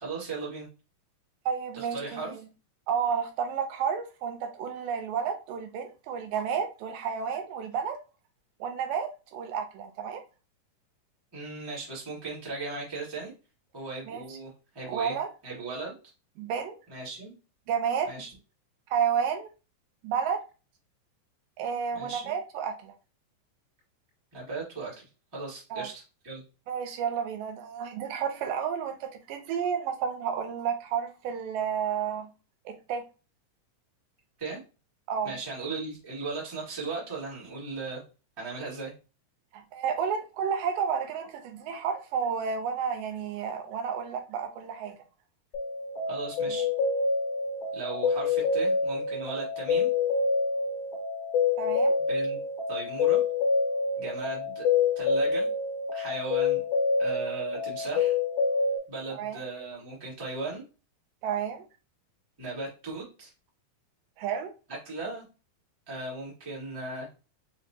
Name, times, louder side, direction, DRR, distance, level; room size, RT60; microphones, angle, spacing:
voice 1, 0.0-0.7 1.7-2.3 11.3-13.3 13.7-15.2 15.4-15.9 16.9-17.3 18.0-18.3 21.9-22.3 24.3-24.9 25.3-26.4 34.4-34.6 35.2-38.0 38.4-38.9 46.1-46.6 47.7-49.9 52.1-52.4 52.7-53.2 54.0-54.6 54.9-55.5 55.9-56.6 57.0-58.1 58.9-60.6 62.4-63.3 64.8-65.2 65.9-67.1, right 3 dB, 15° right, 1.0 m, -37 dB
voice 2, 1.5-2.5 2.9-8.0 8.6-10.2 14.1-14.2 14.9-15.3 16.4-16.8 17.7-18.1 18.9-19.5 20.0-20.4 21.6-22.9 25.7-25.9 26.7-32.3 32.7-33.0 35.1-35.4 39.5-45.0 46.5-46.6 51.6-52.0 59.1-59.4 61.2-61.6 64.2-64.5, right 7 dB, 90° right, 2.4 m, -31 dB
sound 1, 45.5-58.8, left 4 dB, 60° left, 2.0 m, -27 dB
5.6 x 2.5 x 2.8 m
omnidirectional pair, 3.8 m